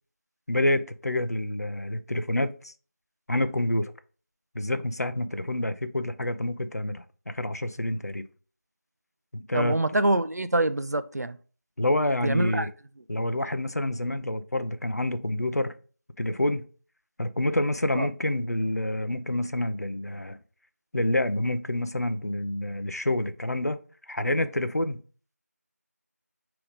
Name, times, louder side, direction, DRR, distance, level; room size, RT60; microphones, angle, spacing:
voice 1, 0.5-2.7 3.3-3.9 4.5-8.2 9.3-9.8 11.8-12.7 13.1-15.7 16.2-16.6 17.2-20.4 20.9-23.8 24.1-25.0, left 1 dB, 70° left, 0.5 m, -28 dB
voice 2, 9.5-11.4 12.2-12.7 18.0-18.1, right 2 dB, 75° right, 0.4 m, -25 dB
5.0 x 2.9 x 3.5 m
figure-of-eight pair, 180°, 9 cm